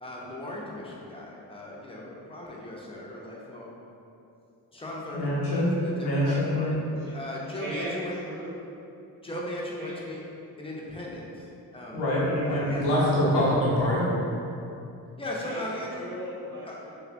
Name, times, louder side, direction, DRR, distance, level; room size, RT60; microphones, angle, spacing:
voice 1, 0.0-3.7 4.7-8.2 9.2-10.2 10.6-12.1 12.4-12.9 15.2-16.1 16.7-16.8, left 1 dB, 15° left, -4 dB, 0.6 m, -38 dB
voice 2, 5.1-5.7 6.0-6.7 11.9-14.1, left 1 dB, 80° left, -7 dB, 0.8 m, -24 dB
voice 3, 7.6-8.6 9.8-10.0 15.4-16.9, right 1 dB, 50° right, -7 dB, 0.8 m, -37 dB
3.3 x 2.4 x 2.5 m, 2.7 s
supercardioid pair, 55°, 40 cm